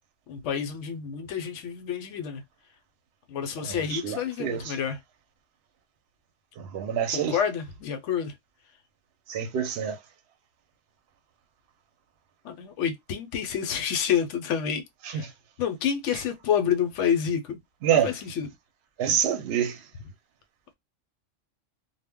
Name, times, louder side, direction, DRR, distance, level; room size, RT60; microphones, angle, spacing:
voice 1, 0.3-2.4 3.3-5.0 7.1-8.3 12.4-14.8 15.1-15.3 15.6-17.6 17.9-18.5, left 8 dB, 75° left, 0.9 m, -28 dB
voice 2, 3.6-4.8 6.6-7.4 9.3-10.0 15.0-15.3 17.8-18.1 19.0-19.8, right 9 dB, 65° right, 0.7 m, -27 dB
2.1 x 2.1 x 3.4 m
omnidirectional pair, 1.3 m